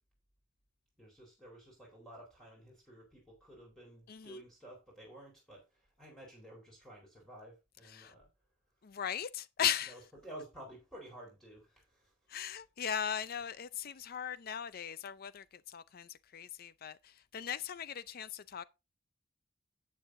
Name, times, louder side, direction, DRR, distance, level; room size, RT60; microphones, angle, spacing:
voice 1, 1.0-8.3 9.9-12.1 14.1-14.3, right 1 dB, ahead, 4.2 m, -53 dB
voice 2, 4.1-4.4 7.9-8.1 8.8-9.9 12.3-18.6, left 9 dB, 50° left, 0.5 m, -38 dB
11.5 x 8.5 x 2.6 m
head